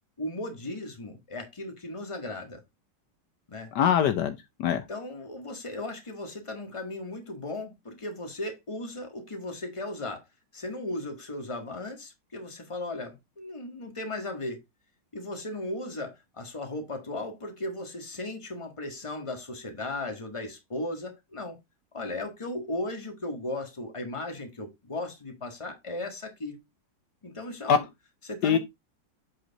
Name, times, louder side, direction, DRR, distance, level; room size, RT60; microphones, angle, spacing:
voice 1, 0.2-2.6 3.5-3.7 4.9-10.3 10.5-14.6 15.1-21.6 21.9-26.6 27.2-27.8 28.2-28.6, left 2 dB, 15° left, 1.6 m, -36 dB
voice 2, 3.7-4.8 27.7-27.8 28.4-28.6, left 8 dB, 70° left, 1.2 m, -23 dB
7.9 x 4.5 x 3.9 m
omnidirectional pair, 2.0 m